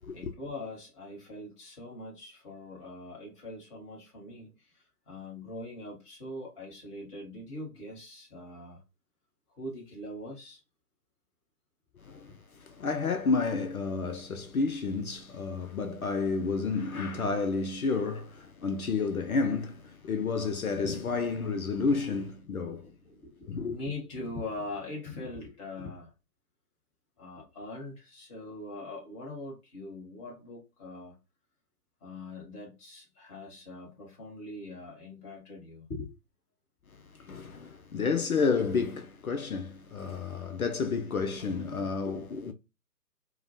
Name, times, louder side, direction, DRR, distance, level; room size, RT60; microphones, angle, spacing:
voice 1, 0.1-8.8 9.6-10.6 23.0-26.1 27.2-31.2 32.0-36.1, left 2 dB, 20° left, 1.1 m, -42 dB
voice 2, 12.0-22.9 23.5-23.8 37.0-42.5, left 4 dB, 65° left, 0.6 m, -31 dB
4.7 x 2.2 x 2.5 m
figure-of-eight pair, 135°, 47 cm